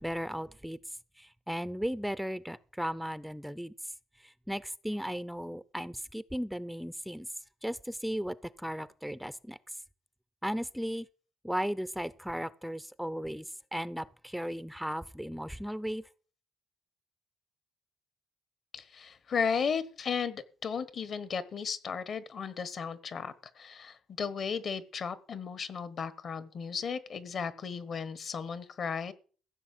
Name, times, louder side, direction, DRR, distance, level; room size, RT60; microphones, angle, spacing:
voice 1, 0.0-3.9 4.2-7.3 7.6-9.8 10.4-11.1 11.4-16.1, equal, ahead, 0.5 m, -36 dB
voice 2, 18.7-29.1, left 6 dB, 55° left, 1.3 m, -35 dB
15.0 x 6.5 x 7.7 m
cardioid pair, 90°, 0 cm